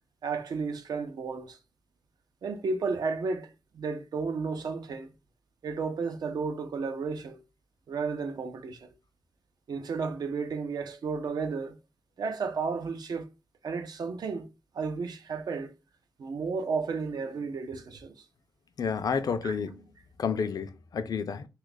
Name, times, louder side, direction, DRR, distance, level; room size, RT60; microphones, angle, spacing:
voice 1, 0.2-1.6 2.4-5.1 5.6-7.4 7.9-8.9 9.7-11.8 12.2-13.3 13.6-14.5 14.7-15.7 16.2-18.2 19.4-19.5, right 4 dB, 85° right, 0.5 m, -33 dB
voice 2, 18.8-19.9 20.2-21.5, left 6 dB, 75° left, 0.4 m, -30 dB
2.7 x 2.3 x 3.9 m
wide cardioid pair, 100°, 7 cm